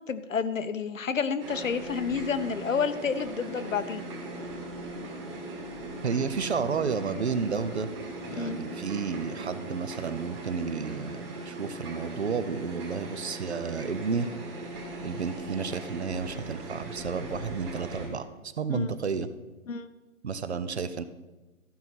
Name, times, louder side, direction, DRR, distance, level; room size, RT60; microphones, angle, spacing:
voice 1, 0.0-4.1 8.3-8.6 18.7-18.9 19.7-19.9, left 6 dB, 65° left, 12 dB, 0.9 m, -30 dB
sound 1, 1.4-18.1, right 2 dB, 20° right, 1.8 m, -40 dB
sound 2, 3.4-10.0, right 1 dB, 10° left, 0.7 m, -44 dB
voice 2, 6.0-7.9 8.3-14.3 15.0-19.3 20.2-21.0, right 5 dB, 50° right, 13 dB, 0.7 m, -31 dB
13.5 x 5.6 x 6.0 m, 1.1 s
hypercardioid pair, 160°, 42 cm